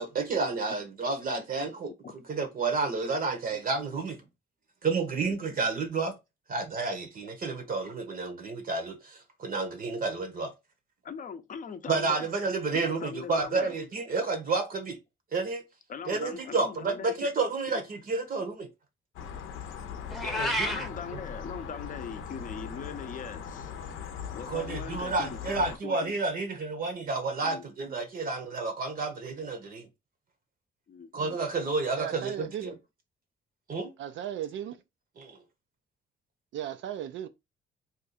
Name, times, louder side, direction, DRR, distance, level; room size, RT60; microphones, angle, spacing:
voice 1, 0.0-1.9 2.3-4.2 4.8-6.1 6.5-10.5 11.9-15.0 15.3-15.6 16.0-18.7 20.4-20.8 24.5-29.9 31.1-32.7 33.7-33.9 35.2-35.4, right 4 dB, 45° right, 0.8 m, -30 dB
voice 2, 11.0-12.3 12.7-13.8 15.9-17.1 17.7-17.8 20.2-23.7 24.3-26.1 27.4-27.6 30.9-31.1, left 6 dB, 40° left, 0.6 m, -40 dB
sound 1, 19.2-25.8, left 7 dB, 85° left, 0.6 m, -40 dB
Meow, 20.1-20.9, equal, ahead, 0.7 m, -29 dB
voice 3, 32.0-32.7 34.0-34.8 36.5-37.3, right 10 dB, 70° right, 0.4 m, -36 dB
2.6 x 2.3 x 4.1 m
cardioid pair, 90°, 20 cm